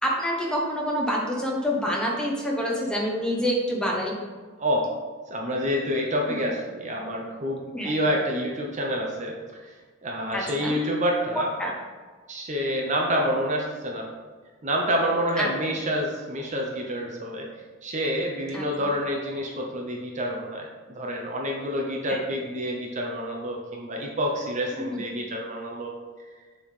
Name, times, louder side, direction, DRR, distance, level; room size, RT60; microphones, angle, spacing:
voice 1, 0.0-4.2 6.3-6.4 7.7-7.9 10.3-10.8 11.3-11.7 15.4-15.5 18.5-18.6 22.1-22.2 24.8-25.0, equal, 5° left, -2 dB, 1.1 m, -27 dB
voice 2, 4.6-4.9 5.3-9.3 10.0-11.5 12.3-14.1 14.6-17.5 17.8-26.0, equal, 35° right, 0 dB, 0.8 m, -28 dB
7.1 x 3.8 x 5.0 m, 1.4 s
head